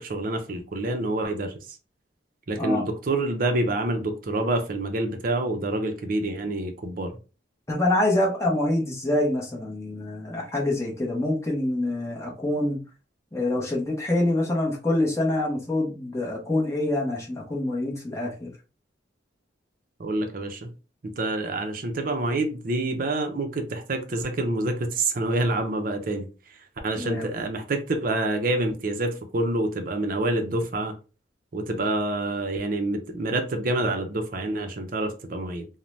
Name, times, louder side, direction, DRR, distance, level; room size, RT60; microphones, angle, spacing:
voice 1, 0.0-1.5 2.5-7.1 20.0-20.7 21.2-26.3 26.8-30.9 31.5-35.7, right 2 dB, 45° right, 0.5 m, -27 dB
voice 2, 7.7-12.8 13.3-18.5 27.0-27.3, left 1 dB, 15° left, 0.8 m, -26 dB
2.6 x 2.1 x 3.1 m
head